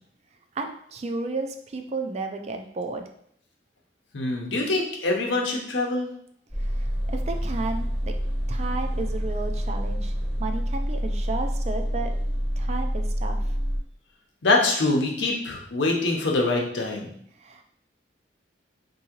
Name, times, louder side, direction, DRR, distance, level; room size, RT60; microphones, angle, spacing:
voice 1, 0.6-3.1 6.6-8.2 8.5-10.1 10.4-12.1 12.6-13.5 17.4-17.6, right 3 dB, 35° right, 5 dB, 0.3 m, -33 dB
voice 2, 4.1-6.1 14.4-17.1, left 2 dB, 85° left, 0 dB, 0.8 m, -24 dB
sound 1, 6.5-13.8, equal, 5° right, 0.7 m, -27 dB
3.6 x 2.7 x 2.9 m, 0.65 s
head